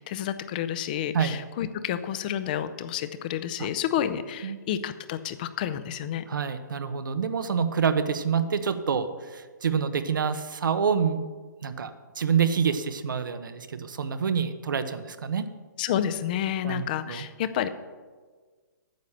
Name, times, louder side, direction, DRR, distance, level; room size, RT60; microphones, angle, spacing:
voice 1, 0.0-6.2 15.8-17.7, left 10 dB, 25° left, 12 dB, 0.5 m, -30 dB
voice 2, 6.3-11.2 11.6-11.9 12.2-15.5 16.6-17.3, right 6 dB, 80° right, 10 dB, 0.9 m, -27 dB
9.3 x 7.2 x 6.6 m, 1.4 s
hypercardioid pair, 165°, 11 cm